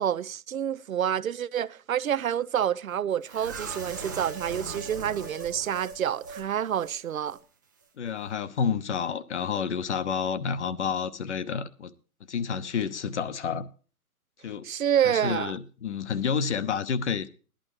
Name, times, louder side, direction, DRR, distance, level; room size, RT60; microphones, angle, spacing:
voice 1, 0.0-7.4 14.6-15.5, right 9 dB, 65° right, 0.7 m, -28 dB
sound 1, 3.3-6.5 6.7-6.9 7.3-7.4, right 3 dB, 15° right, 0.6 m, -39 dB
voice 2, 8.0-11.9 12.3-13.7 14.4-14.7 15.0-17.3, left 6 dB, 50° left, 1.0 m, -29 dB
16.5 x 11.5 x 3.1 m
figure-of-eight pair, 145°, 45 cm